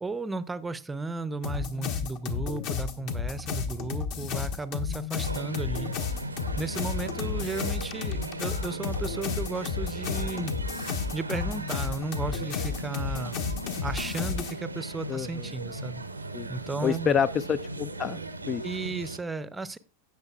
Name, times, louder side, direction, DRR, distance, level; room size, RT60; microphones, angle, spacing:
voice 1, 0.0-5.9 6.6-10.6 11.1-13.4 13.8-16.0 16.5-17.2 18.6-19.8, right 3 dB, 10° right, 0.6 m, -34 dB
sound 1, 1.4-14.5, left 6 dB, 45° left, 1.1 m, -32 dB
sound 2, 5.2-19.2, right 2 dB, 85° right, 0.7 m, -37 dB
voice 2, 15.1-15.5 16.3-16.5 16.8-18.2 18.5-18.6, left 7 dB, 25° left, 0.3 m, -28 dB
17.0 x 6.4 x 2.4 m
figure-of-eight pair, 90°, 0 cm